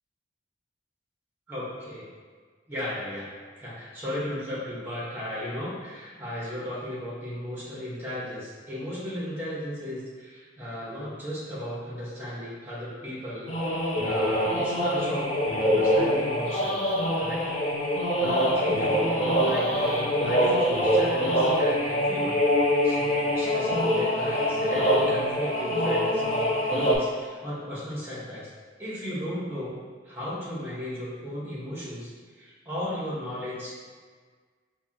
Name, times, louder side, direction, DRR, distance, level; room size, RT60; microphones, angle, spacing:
voice 1, 1.5-2.1 2.7-3.3 3.6-13.5 14.0-17.5 18.2-28.5 28.8-29.8 30.0-33.7, left 1 dB, 15° right, -8 dB, 1.3 m, -36 dB
sound 1, 13.5-27.0, equal, 35° left, 0.5 m, -24 dB
4.7 x 2.4 x 2.9 m, 1.6 s
head